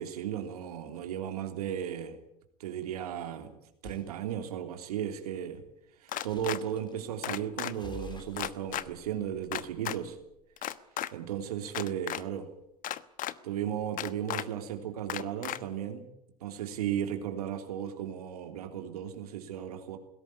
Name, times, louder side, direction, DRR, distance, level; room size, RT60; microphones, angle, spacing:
voice 1, 0.0-2.2 2.6-3.5 3.8-5.6 6.0-10.2 11.1-12.5 13.4-16.1 16.4-20.0, right 10 dB, 75° right, 6 dB, 3.2 m, -35 dB
sound 1, 3.8-4.1 6.3-7.0 7.7-10.4, left 4 dB, 25° left, 3.1 m, -50 dB
sound 2, 6.1-6.6 7.2-7.7 8.4-8.8 9.5-10.0 10.6-11.1 11.7-12.2 12.8-13.3 14.0-14.4 15.1-15.6, left 13 dB, 45° left, 1.1 m, -34 dB
20.0 x 17.0 x 9.6 m, 0.81 s
hypercardioid pair, 80°, 20 cm